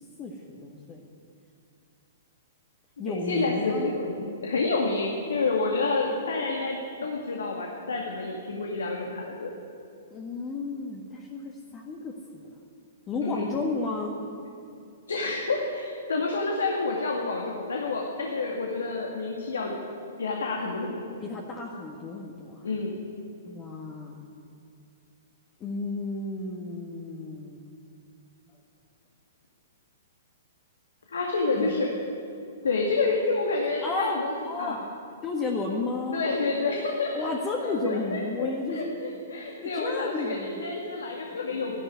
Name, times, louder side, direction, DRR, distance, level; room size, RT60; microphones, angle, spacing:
voice 1, 0.2-1.0 3.0-4.0 10.1-12.1 13.1-14.1 21.2-22.7 23.5-24.2 25.6-27.7 31.5-31.8 33.8-34.2 34.4-34.9 35.2-36.2 37.1-39.0 39.7-40.7 41.5-41.7, left 3 dB, 25° left, -1 dB, 1.7 m, -32 dB
voice 2, 3.0-9.5 13.2-13.6 15.1-19.7 20.2-21.0 22.6-23.1 31.1-31.9 32.6-34.3 34.6-34.8 36.1-37.3 37.6-41.8, left 3 dB, 80° left, 0 dB, 2.1 m, -29 dB
13.0 x 11.5 x 9.4 m, 2.6 s
hypercardioid pair, 125°, 0 cm